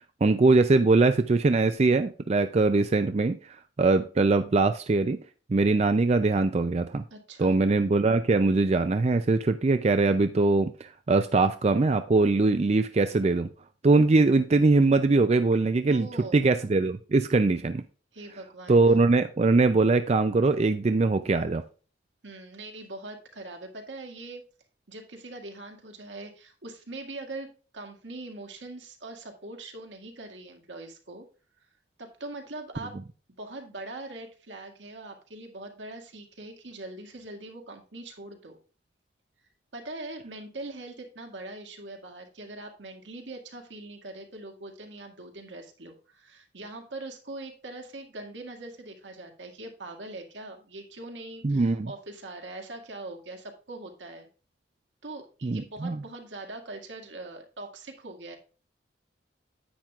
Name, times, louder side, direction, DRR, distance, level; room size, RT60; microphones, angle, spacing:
voice 1, 0.2-3.4 3.8-5.2 5.5-7.0 7.4-13.5 13.8-17.8 18.7-21.6 51.4-51.9 55.4-56.0, right 3 dB, 35° right, 0.4 m, -22 dB
voice 2, 7.1-7.6 15.9-16.4 18.1-18.8 22.2-24.4 24.9-31.2 32.0-33.0 33.4-38.6 39.7-54.3 55.0-58.4, right 2 dB, 80° right, 2.1 m, -42 dB
10.0 x 9.1 x 2.4 m
head